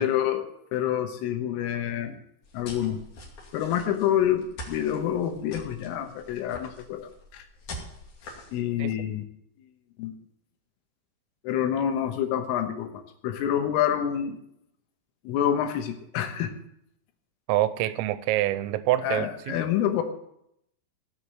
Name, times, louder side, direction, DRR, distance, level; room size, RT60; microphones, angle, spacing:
voice 1, 0.0-2.2 2.5-3.0 3.5-7.5 8.5-9.2 10.0-10.2 11.4-14.4 15.3-16.5 19.0-20.0, left 10 dB, 80° left, 6 dB, 3.6 m, -27 dB
sound 1, 2.4-8.6, left 1 dB, 45° left, 3.5 m, -44 dB
voice 2, 17.5-19.6, right 14 dB, 85° right, 13 dB, 3.4 m, -26 dB
17.5 x 6.5 x 7.4 m, 0.77 s
omnidirectional pair, 6.0 m